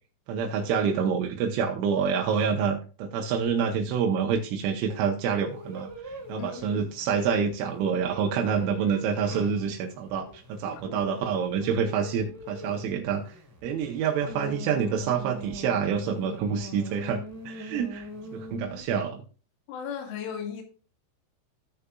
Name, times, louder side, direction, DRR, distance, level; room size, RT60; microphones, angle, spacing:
voice 1, 0.3-13.4 13.6-19.2, right 6 dB, 85° right, 3.4 m, -27 dB
sound 1, 5.3-18.8, equal, 5° right, 2.8 m, -42 dB
voice 2, 6.4-6.8 10.7-10.8 19.7-20.6, left 8 dB, 85° left, 4.2 m, -36 dB
15.5 x 6.7 x 2.3 m
omnidirectional pair, 5.5 m